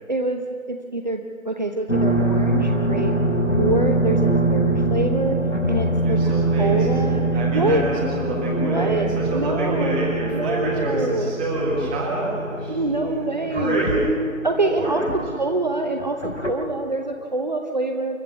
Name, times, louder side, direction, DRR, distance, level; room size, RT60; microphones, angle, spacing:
voice 1, 0.1-3.1 3.6-5.4 5.7-7.2 7.5-7.8 8.6-9.1 9.3-9.9 10.3-11.3 12.7-13.9 14.4-18.2, right 2 dB, 30° right, 4 dB, 1.0 m, -25 dB
sound 1, 1.9-15.3 16.0-16.5, right 2 dB, 65° left, 4.3 m, -23 dB
voice 2, 6.0-12.8 13.4-14.0 14.7-15.2, right 1 dB, 5° right, -5 dB, 1.6 m, -27 dB
29.0 x 13.5 x 7.1 m, 2.3 s
figure-of-eight pair, 160°, 41 cm